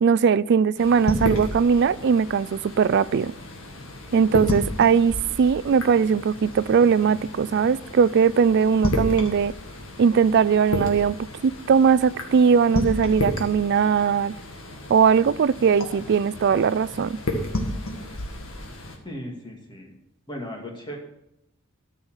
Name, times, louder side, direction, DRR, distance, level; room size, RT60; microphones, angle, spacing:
voice 1, 0.0-3.3 4.1-9.5 10.0-11.2 11.4-14.3 14.9-17.2, right 6 dB, 55° right, 0.3 m, -20 dB
sound 1, 0.8-19.0, left 1 dB, 75° left, 1.8 m, -32 dB
voice 2, 19.0-19.9 20.3-21.0, equal, 20° left, 2.0 m, -36 dB
13.0 x 5.7 x 6.3 m
head